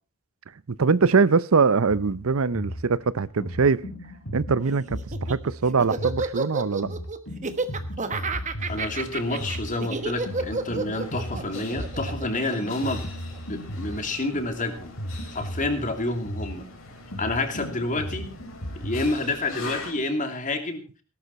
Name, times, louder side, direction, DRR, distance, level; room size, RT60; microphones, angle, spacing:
voice 1, 0.7-3.8 4.3-6.9, right 4 dB, 90° right, 0.7 m, -22 dB
sound 1, 1.9-19.1, equal, 70° left, 3.4 m, -36 dB
Laughter, 5.0-13.4, right 3 dB, 35° right, 1.3 m, -31 dB
sound 2, 8.6-19.9, left 2 dB, 85° left, 5.1 m, -43 dB
voice 2, 8.7-13.0 13.4-14.9 15.3-16.7 17.2-18.3 18.8-20.8, left 2 dB, 40° left, 2.7 m, -28 dB
18.0 x 12.0 x 4.2 m
head